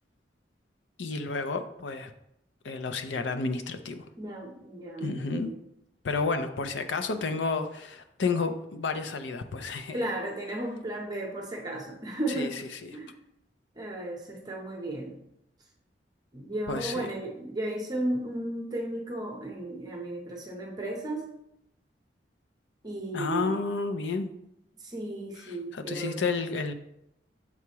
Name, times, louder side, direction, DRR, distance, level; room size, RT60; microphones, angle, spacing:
voice 1, 1.0-2.1 2.6-4.1 5.0-5.6 6.0-10.0 12.3-12.5 12.8-13.0 16.7-17.1 23.1-24.3 25.5-26.7, left 4 dB, 90° left, 9 dB, 0.5 m, -31 dB
voice 2, 4.2-5.6 9.9-12.6 12.9-13.1 13.7-15.2 16.3-21.3 22.8-23.6 24.8-26.4, right 1 dB, 20° right, 0 dB, 0.7 m, -34 dB
7.1 x 4.6 x 2.9 m, 0.79 s
head